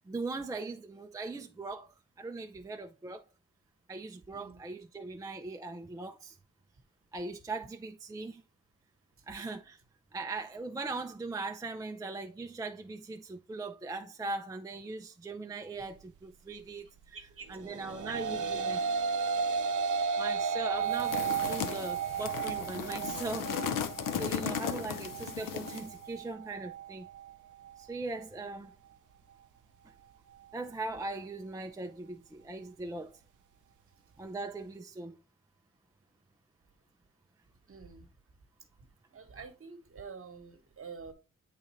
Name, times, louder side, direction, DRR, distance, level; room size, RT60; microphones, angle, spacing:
voice 1, 0.1-3.2 3.9-6.4 7.1-8.4 9.3-9.8 10.1-17.2 17.5-18.8 20.2-23.5 24.1-27.1 27.8-28.7 30.5-33.2 34.2-35.2, right 3 dB, 10° right, 0.4 m, -40 dB
voice 2, 17.1-17.5 18.1-18.2 37.7-38.1 39.1-41.1, right 5 dB, 45° right, 1.2 m, -47 dB
sound 1, 17.7-26.8, right 6 dB, 70° right, 0.5 m, -33 dB
sound 2, 20.9-26.0, left 8 dB, 85° left, 0.6 m, -36 dB
8.4 x 3.8 x 3.0 m
wide cardioid pair, 105°, 32 cm